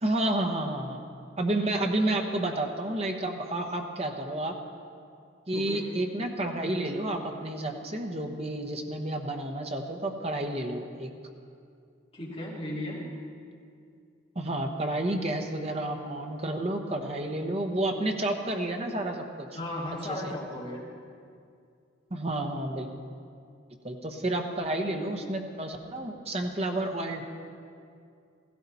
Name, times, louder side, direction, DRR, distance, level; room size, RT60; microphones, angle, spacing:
voice 1, 0.0-1.0 1.4-4.5 5.5-11.1 14.3-19.5 20.1-20.3 22.1-22.9 23.8-27.2, right 1 dB, 30° right, 3 dB, 1.1 m, -30 dB
voice 2, 5.5-5.9 12.1-13.1 19.5-20.8, left 1 dB, 30° left, -6 dB, 3.0 m, -35 dB
16.0 x 15.5 x 4.2 m, 2.3 s
head